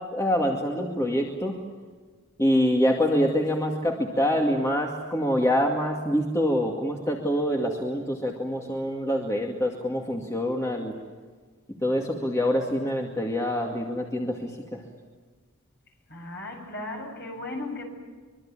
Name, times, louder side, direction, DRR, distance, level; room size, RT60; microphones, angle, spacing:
voice 1, 0.1-1.6 2.4-10.9 11.8-14.8, equal, 15° left, 0 dB, 2.3 m, -25 dB
voice 2, 16.1-17.8, left 2 dB, 50° left, 1 dB, 7.7 m, -36 dB
25.0 x 23.5 x 8.9 m, 1.5 s
head